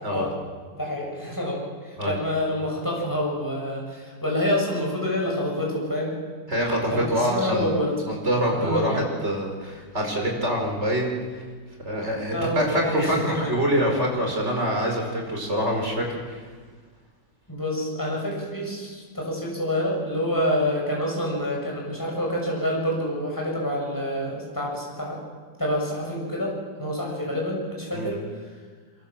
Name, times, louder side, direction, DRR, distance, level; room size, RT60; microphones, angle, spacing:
voice 1, 0.7-6.2 6.9-8.0 8.5-9.0 12.3-13.5 17.5-25.2 25.6-28.5, left 1 dB, 10° left, -2 dB, 7.2 m, -27 dB
voice 2, 6.5-7.8 8.1-11.1 11.8-16.4 27.9-28.1, equal, 40° right, 1 dB, 5.7 m, -25 dB
23.5 x 23.0 x 7.5 m, 1.5 s
omnidirectional pair, 1.9 m